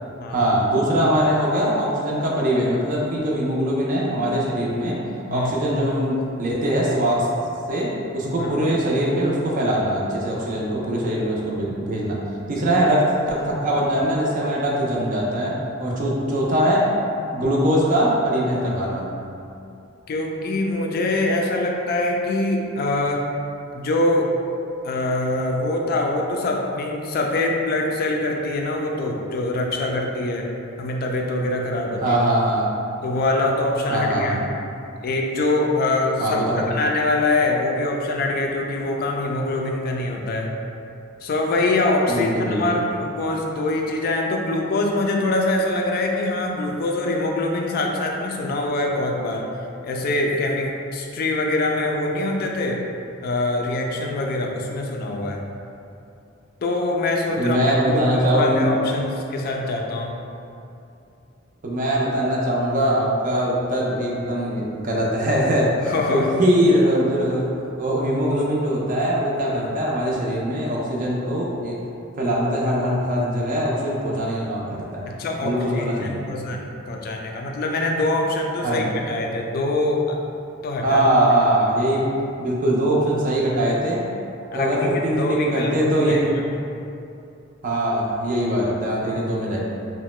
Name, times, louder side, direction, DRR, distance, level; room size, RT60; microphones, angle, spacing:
voice 1, 0.3-5.0 5.3-7.3 7.7-12.2 12.5-16.9 17.3-19.0 32.0-32.7 33.9-34.4 36.2-36.6 42.1-42.8 57.4-58.7 61.6-67.5 67.8-71.8 72.2-75.1 75.4-76.3 78.6-78.8 80.8-82.1 82.4-84.0 84.5-86.3 87.6-89.6, equal, 45° right, -4 dB, 0.4 m, -22 dB
voice 2, 8.3-8.7 15.8-16.0 20.1-23.2 23.7-24.4 24.8-30.5 30.8-32.2 33.0-34.4 35.0-40.5 41.2-49.5 49.8-52.9 53.2-55.4 56.6-57.6 57.9-60.1 65.8-66.4 75.1-80.2 80.6-81.0 84.5-86.3, left 2 dB, 50° left, 1 dB, 0.3 m, -24 dB
2.8 x 2.1 x 3.0 m, 2.6 s
head